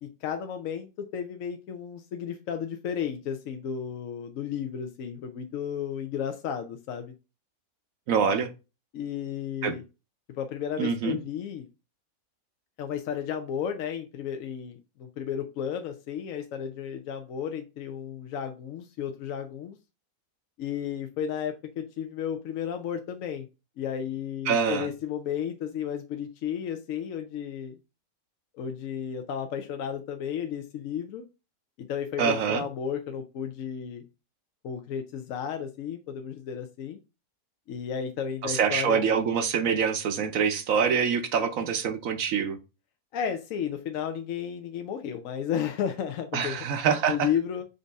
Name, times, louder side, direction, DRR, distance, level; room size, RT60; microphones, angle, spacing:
voice 1, 0.0-7.1 8.9-9.8 10.4-11.6 12.8-19.8 20.6-23.5 23.8-27.8 28.5-31.2 31.9-34.0 34.6-37.0 37.7-39.0 43.1-46.6 47.1-47.6, left 8 dB, 70° left, 6 dB, 0.9 m, -33 dB
voice 2, 8.1-8.5 9.6-9.7 10.8-11.2 24.5-24.9 32.2-32.6 38.4-42.6 46.3-47.3, right 6 dB, 65° right, 8 dB, 1.0 m, -25 dB
5.2 x 2.7 x 3.4 m, 0.28 s
omnidirectional pair, 1.6 m